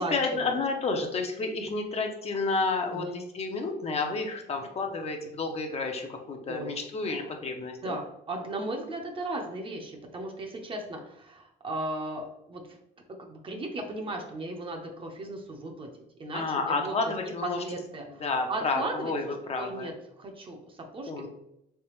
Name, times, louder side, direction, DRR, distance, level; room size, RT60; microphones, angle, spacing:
voice 1, 0.0-8.0 16.3-17.6 18.2-19.9 21.1-21.3, left 3 dB, 40° left, 3 dB, 0.6 m, -30 dB
voice 2, 7.8-12.6 13.2-15.9 16.2-16.9 17.6-19.1 19.6-21.3, right 2 dB, 30° right, 3 dB, 0.7 m, -36 dB
3.3 x 3.2 x 3.0 m, 0.82 s
cardioid pair, 110°, 17 cm